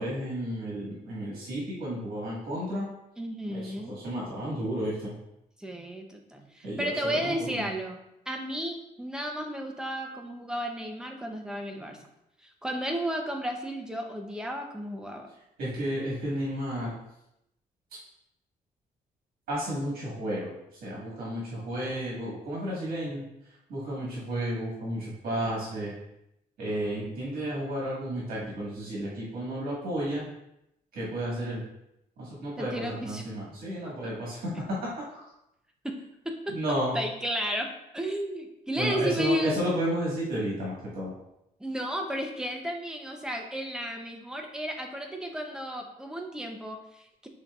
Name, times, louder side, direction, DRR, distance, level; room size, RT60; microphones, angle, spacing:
voice 1, 0.0-2.9 3.5-5.1 6.6-7.6 15.6-17.0 19.5-20.5 20.8-23.2 23.7-25.9 26.6-30.3 30.9-31.6 32.2-34.5 34.8-34.9 36.5-36.9 38.7-41.1, right 1 dB, 80° right, -6 dB, 1.5 m, -32 dB
voice 2, 3.2-4.0 5.6-8.0 8.3-12.1 12.4-15.3 32.6-33.2 33.8-34.1 35.8-35.9 36.2-36.6 36.9-39.6 41.6-47.3, equal, 5° right, 3 dB, 0.5 m, -33 dB
5.6 x 3.7 x 2.3 m, 0.83 s
cardioid pair, 140°, 15 cm